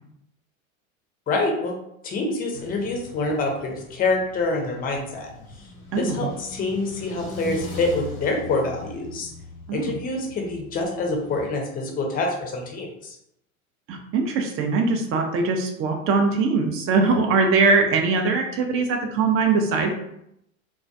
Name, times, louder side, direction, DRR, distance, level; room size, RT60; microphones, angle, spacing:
voice 1, 1.3-1.7 2.0-5.3 6.0-9.3 9.7-13.1, left 2 dB, 20° left, 1 dB, 0.5 m, -26 dB
sound 1, 2.5-11.5, left 2 dB, 85° left, 0.8 m, -40 dB
voice 2, 5.9-6.3 9.7-10.0 13.9-19.9, right 4 dB, 35° right, 3 dB, 0.5 m, -21 dB
2.2 x 2.2 x 2.6 m, 0.78 s
hypercardioid pair, 90°, 42 cm